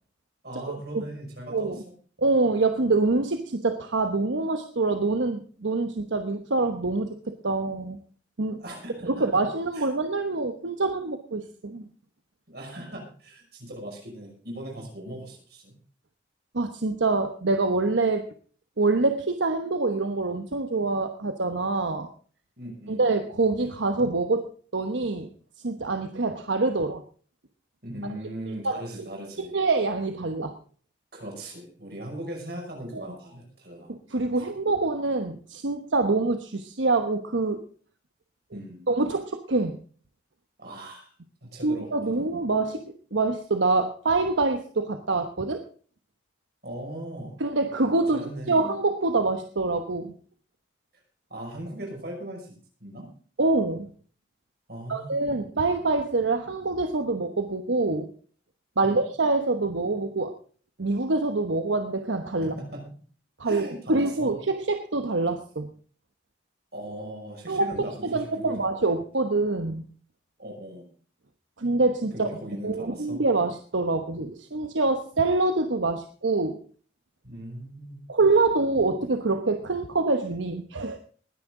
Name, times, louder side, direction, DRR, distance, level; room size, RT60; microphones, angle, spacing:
voice 1, 0.4-1.7 8.6-9.5 9.7-9.9 12.5-15.8 22.6-23.1 27.8-29.5 31.1-34.0 34.5-34.6 38.5-38.9 40.6-41.1 41.4-42.3 46.6-47.4 48.1-48.8 51.3-53.1 54.7-55.4 58.8-59.1 62.4-63.0 63.4-64.3 66.7-69.1 70.4-70.9 72.1-73.2 77.2-78.0, right 1 dB, 55° right, 1 dB, 5.8 m, -39 dB
voice 2, 1.5-1.8 2.2-8.0 8.4-8.6 9.1-11.8 16.5-18.2 18.8-22.1 22.9-25.3 25.6-27.0 28.6-28.7 29.5-30.5 32.9-33.0 33.9-37.6 38.9-39.8 41.6-42.8 43.1-45.6 47.4-50.1 53.4-53.9 54.9-58.1 58.8-60.3 60.8-62.5 63.4-65.7 67.5-67.7 68.0-69.9 71.6-72.3 72.6-76.6 78.1-81.0, right 3 dB, 80° right, 6 dB, 1.1 m, -25 dB
20.0 x 10.0 x 3.8 m, 0.43 s
head